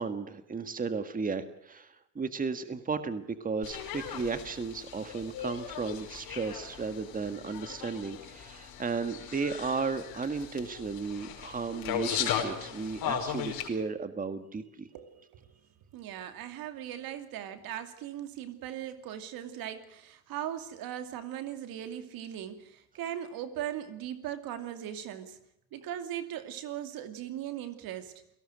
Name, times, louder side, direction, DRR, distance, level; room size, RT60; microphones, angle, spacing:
voice 1, 0.0-14.9, right 4 dB, 20° right, 10 dB, 1.7 m, -34 dB
sound 1, 3.6-13.7, left 9 dB, 75° left, 4.9 m, -37 dB
voice 2, 14.9-15.5 15.9-25.4 25.7-28.1, right 11 dB, 70° right, 8 dB, 2.7 m, -39 dB
29.0 x 18.0 x 6.4 m, 0.77 s
cardioid pair, 105°, 37 cm